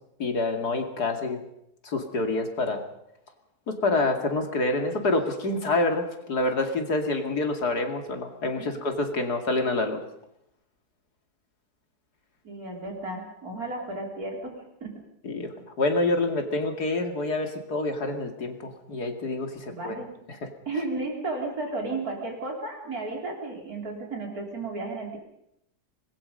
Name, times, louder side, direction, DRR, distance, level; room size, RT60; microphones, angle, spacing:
voice 1, 0.2-1.4 1.8-2.8 3.7-10.0 15.2-19.9 20.3-20.5, left 2 dB, 75° left, 5 dB, 3.0 m, -27 dB
voice 2, 12.4-14.9 19.7-20.2 20.7-25.2, right 2 dB, 65° right, 1 dB, 4.6 m, -33 dB
25.0 x 21.0 x 5.4 m, 0.79 s
omnidirectional pair, 1.7 m